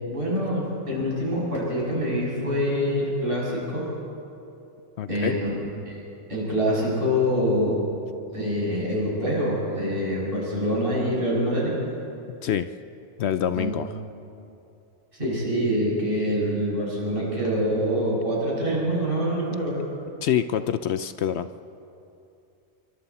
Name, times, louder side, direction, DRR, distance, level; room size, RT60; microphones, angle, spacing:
voice 1, 0.1-3.9 5.1-5.5 5.9-6.0 6.3-7.8 8.3-11.8 13.5-13.7 15.1-19.8, equal, 50° right, -6 dB, 7.0 m, -25 dB
voice 2, 5.0-5.4 12.4-12.7 13.2-13.9 20.2-21.5, left 9 dB, 70° left, 11 dB, 0.8 m, -25 dB
25.5 x 24.0 x 4.2 m, 2.7 s
omnidirectional pair, 1.2 m